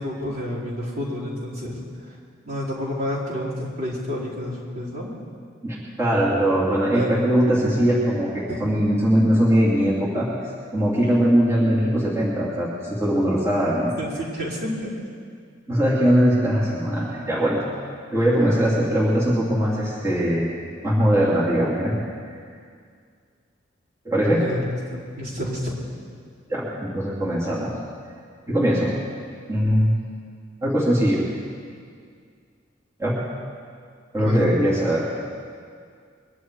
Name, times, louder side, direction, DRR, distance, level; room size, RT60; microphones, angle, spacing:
voice 1, 0.0-1.8 2.1-2.2 2.4-5.1 6.6-7.2 8.5-8.6 14.0-14.9 18.3-18.9 24.3-24.6 24.9-25.8 34.2-34.5, equal, 55° right, -8 dB, 4.7 m, -30 dB
voice 2, 5.6-10.3 10.7-13.9 15.7-17.6 18.1-20.5 20.8-21.9 24.0-24.5 26.5-27.8 28.5-29.0 29.5-29.9 30.6-31.3 33.0-33.2 34.1-35.0, equal, 15° right, -9 dB, 2.9 m, -21 dB
23.0 x 11.0 x 4.7 m, 2.2 s
head